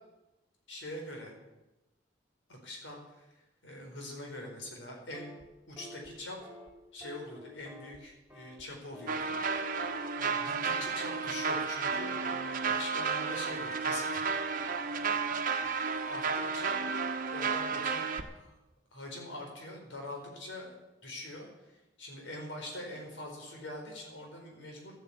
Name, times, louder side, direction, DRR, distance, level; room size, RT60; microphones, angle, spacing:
voice 1, 0.7-1.3 2.5-3.3 3.6-5.3 5.7-6.4 6.9-9.3 9.6-9.8 10.1-14.2 14.8-15.4 16.1-16.3 16.5-16.8 17.3-18.6 18.9-20.8 21.0-21.5 22.0-25.0, left 1 dB, 80° left, 1 dB, 4.6 m, -44 dB
sound 1, 5.1-5.4 5.8-6.1 6.4-6.7 7.0-8.0 8.3-8.6 8.9-9.2 9.6-10.2, left 1 dB, 5° right, 3.0 m, -49 dB
sound 2, 9.1-18.2, right 5 dB, 50° right, 1.2 m, -32 dB
13.0 x 9.6 x 8.4 m, 1.0 s
head